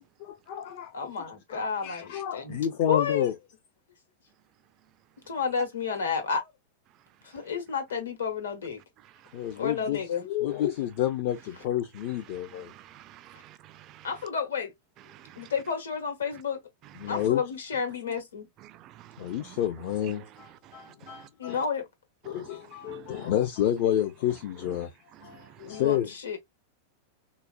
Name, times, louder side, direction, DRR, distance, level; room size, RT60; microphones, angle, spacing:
voice 1, 0.2-0.9 1.5-3.3 9.3-10.0 10.2-12.7 17.0-17.4 19.2-21.6 22.3-24.9 25.2-26.1, left 11 dB, 50° left, 0.5 m, -30 dB
voice 2, 0.9-2.6 2.9-3.3 5.3-6.5 7.2-8.8 9.6-10.3 14.0-14.7 15.4-16.6 17.0-18.4 21.4-21.8 25.6-26.4, left 6 dB, 70° left, 1.0 m, -31 dB
voice 3, 12.7-14.1 15.1-15.3 18.8-19.1 19.4-19.5 21.1-21.2 22.3-22.5 22.9-23.3, right 13 dB, 35° right, 0.3 m, -50 dB
3.9 x 2.1 x 2.3 m
figure-of-eight pair, 90°, 0 cm